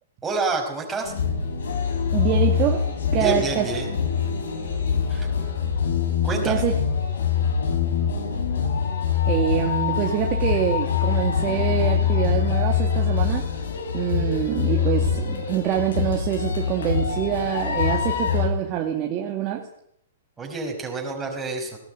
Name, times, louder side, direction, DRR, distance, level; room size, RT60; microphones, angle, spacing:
voice 1, 0.2-1.1 3.2-3.9 5.1-5.3 6.2-6.6 20.4-21.8, right 3 dB, 10° right, 0 dB, 5.5 m, -28 dB
sound 1, 1.0-18.5, left 7 dB, 75° left, 7.4 m, -24 dB
voice 2, 2.1-2.8 3.1-3.7 6.4-6.7 9.3-13.5 13.9-19.7, right 10 dB, 25° right, 2 dB, 2.3 m, -25 dB
19.5 x 19.0 x 9.3 m, 0.69 s
hypercardioid pair, 170°, 0 cm